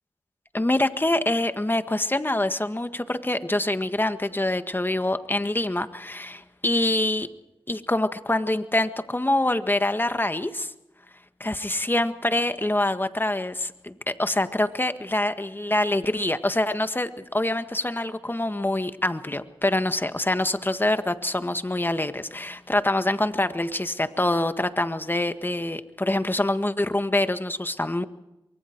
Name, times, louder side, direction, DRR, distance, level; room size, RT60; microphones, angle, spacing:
voice 1, 0.5-7.3 7.7-10.7 11.4-28.0, left 1 dB, 20° left, 9 dB, 1.7 m, -25 dB
24.5 x 23.5 x 4.7 m, 0.93 s
cardioid pair, 45°, 9 cm